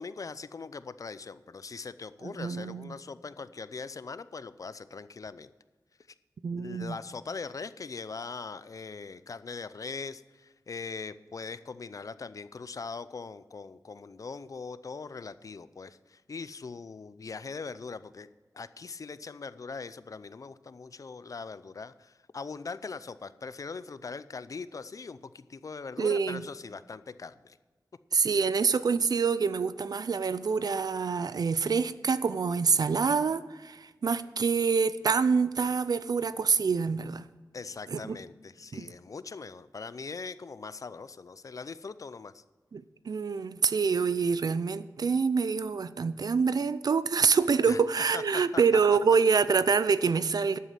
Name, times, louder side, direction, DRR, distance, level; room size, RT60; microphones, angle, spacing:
voice 1, 0.0-5.5 6.6-18.3 18.5-27.6 37.5-42.4 47.7-47.8 48.1-48.6, left 4 dB, 55° left, 15 dB, 0.5 m, -41 dB
voice 2, 2.2-3.0 6.4-7.0 26.0-26.4 28.1-37.2 37.9-38.2 38.7-38.9 42.7-50.6, right 5 dB, 70° right, 15 dB, 0.6 m, -26 dB
12.5 x 8.4 x 5.8 m, 1.3 s
wide cardioid pair, 85°, 7 cm